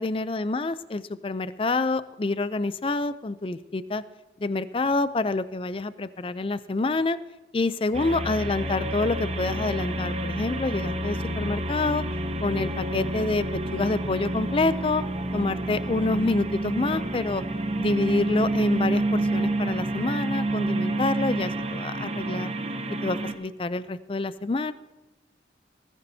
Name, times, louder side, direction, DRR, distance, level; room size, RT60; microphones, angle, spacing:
voice 1, 0.0-4.0 4.4-7.2 7.5-12.0 12.4-13.5 13.7-15.0 15.3-17.4 17.8-22.5 23.0-24.7, left 3 dB, 30° left, 15 dB, 0.4 m, -27 dB
sound 1, 7.9-23.3, right 1 dB, 35° right, 0.9 m, -29 dB
20.5 x 14.5 x 2.8 m, 1.0 s
head